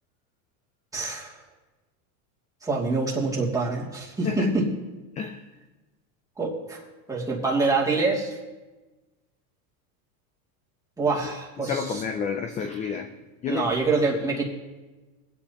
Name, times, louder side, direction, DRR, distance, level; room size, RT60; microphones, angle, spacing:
voice 1, 0.9-1.3 2.6-4.7 6.4-6.8 7.1-8.4 11.0-11.8 13.5-14.4, right 3 dB, 5° right, -4 dB, 2.4 m, -25 dB
voice 2, 4.2-4.6 5.2-5.5 11.2-13.1 13.4-13.8, left 6 dB, 15° left, 6 dB, 0.4 m, -31 dB
24.0 x 8.3 x 2.9 m, 1.2 s
supercardioid pair, 140°, 45 cm